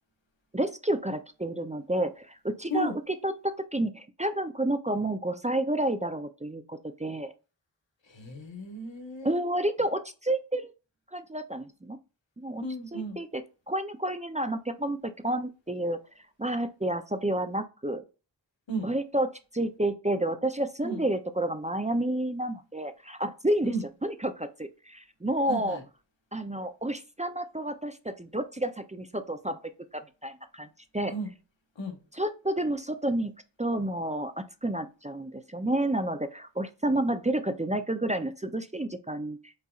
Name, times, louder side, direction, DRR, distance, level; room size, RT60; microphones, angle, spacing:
voice 1, 0.5-7.3 9.2-10.7 11.1-12.0 12.4-12.6 12.9-13.4 13.7-16.0 16.4-18.0 18.8-23.7 24.0-25.8 26.3-29.6 29.9-30.7 30.9-31.1 32.1-33.3 33.6-39.5, right 1 dB, 15° right, 0.4 m, -30 dB
voice 2, 8.0-9.4 12.6-13.2 18.7-18.9 20.8-21.0 23.6-23.8 25.5-25.8 31.1-31.3 31.7-32.0, right 1 dB, 85° left, 1.3 m, -34 dB
5.5 x 4.0 x 2.4 m
wide cardioid pair, 65°, 44 cm